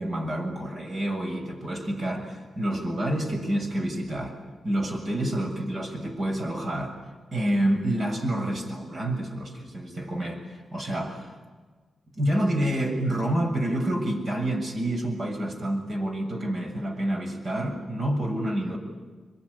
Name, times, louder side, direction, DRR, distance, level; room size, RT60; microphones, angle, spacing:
voice 1, 0.0-4.4 4.6-7.0 7.3-11.3 12.1-18.8, right 1 dB, 50° right, 3 dB, 7.3 m, -28 dB
25.5 x 23.5 x 9.9 m, 1.4 s
cardioid pair, 80°, 0 cm